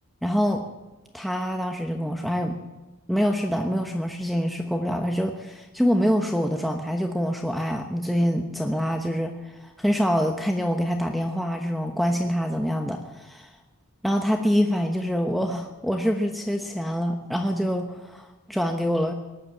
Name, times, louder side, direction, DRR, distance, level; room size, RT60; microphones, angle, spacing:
voice 1, 0.2-0.6 1.1-2.6 3.1-13.5 14.0-19.1, equal, ahead, 2 dB, 1.0 m, -25 dB
19.0 x 10.5 x 7.1 m, 1.1 s
head